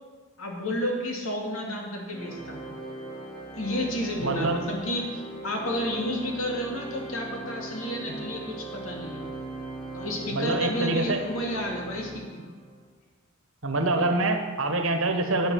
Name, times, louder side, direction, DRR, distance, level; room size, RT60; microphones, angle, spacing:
voice 1, 0.4-2.7 3.5-9.2 9.9-12.2, equal, 90° left, 0 dB, 2.5 m, -31 dB
Organ, 2.1-12.7, right 2 dB, 20° left, 4.3 m, -39 dB
voice 2, 4.2-4.6 10.3-11.2 13.6-15.5, right 2 dB, 75° right, 6 dB, 1.4 m, -25 dB
9.9 x 8.9 x 6.4 m, 1.3 s
head